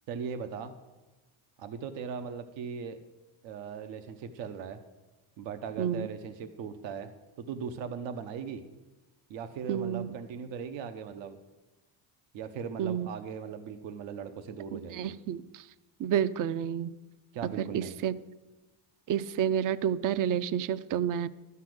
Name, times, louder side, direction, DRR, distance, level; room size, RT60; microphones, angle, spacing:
voice 1, 0.1-0.7 1.6-3.0 3.4-4.8 5.4-7.1 7.4-8.6 9.3-11.4 12.3-15.1 17.3-18.0, right 6 dB, 75° right, 9 dB, 1.0 m, -39 dB
voice 2, 5.8-6.1 9.7-10.1 12.8-13.1 14.7-15.6 16.0-16.9 17.6-18.1 19.1-21.3, right 9 dB, 45° right, 16 dB, 0.6 m, -30 dB
12.0 x 5.7 x 7.8 m, 1.1 s
cardioid pair, 100°, 45 cm